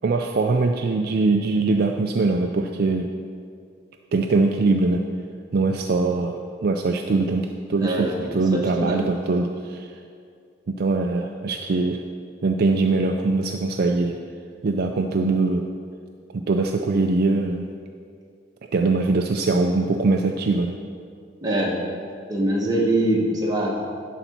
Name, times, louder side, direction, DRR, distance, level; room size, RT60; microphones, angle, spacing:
voice 1, 0.0-3.1 4.1-5.0 5.5-9.9 10.7-12.0 12.4-14.2 14.6-15.7 16.3-17.7 18.7-20.8, right 3 dB, 50° right, 3 dB, 0.4 m, -22 dB
voice 2, 7.8-9.0 21.4-21.8 22.3-23.9, right 1 dB, 20° right, -3 dB, 1.2 m, -23 dB
11.0 x 4.0 x 5.9 m, 2.3 s
head